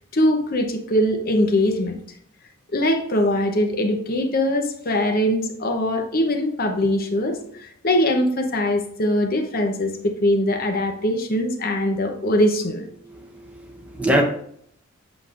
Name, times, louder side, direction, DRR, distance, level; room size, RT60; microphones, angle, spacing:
voice 1, 0.1-1.9 2.7-12.8, left 1 dB, 40° left, 0.8 m, -22 dB
voice 2, 13.0-14.2, right 1 dB, 5° right, 0.8 m, -24 dB
7.8 x 6.7 x 2.5 m
head